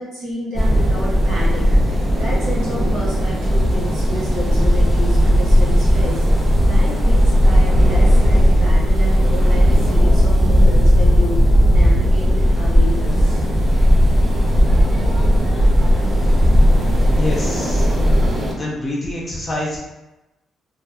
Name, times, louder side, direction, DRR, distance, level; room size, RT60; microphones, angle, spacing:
voice 1, 0.0-6.2 6.7-13.4, left 1 dB, 85° right, -11 dB, 1.5 m, -30 dB
sound 1, 0.6-18.4, left 1 dB, 90° left, 0.6 m, -34 dB
sound 2, 0.6-18.5, equal, 25° right, 0.5 m, -15 dB
voice 2, 17.1-18.0 18.6-19.8, left 1 dB, 30° left, -5 dB, 0.6 m, -26 dB
2.7 x 2.1 x 2.2 m, 0.99 s
cardioid pair, 90°, 0 cm